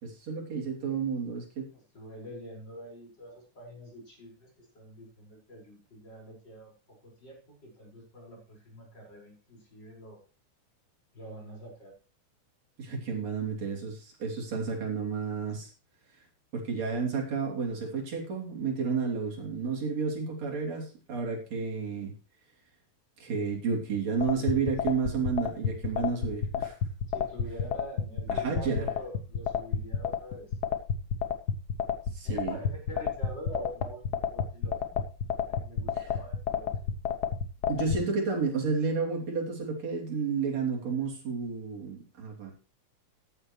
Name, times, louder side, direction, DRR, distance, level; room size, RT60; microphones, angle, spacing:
voice 1, 0.0-1.7 12.8-15.7 16.5-22.1 23.2-26.8 28.3-28.9 32.1-32.6 36.0-36.1 37.7-42.5, right 5 dB, 60° right, -1 dB, 4.3 m, -31 dB
voice 2, 1.7-10.2 11.1-11.9 24.1-24.4 27.1-30.6 32.2-35.0 35.5-36.7, equal, 35° left, -2 dB, 5.8 m, -46 dB
sound 1, 24.2-38.0, left 7 dB, 80° left, 0.9 m, -29 dB
14.5 x 11.0 x 3.1 m, 0.34 s
omnidirectional pair, 3.5 m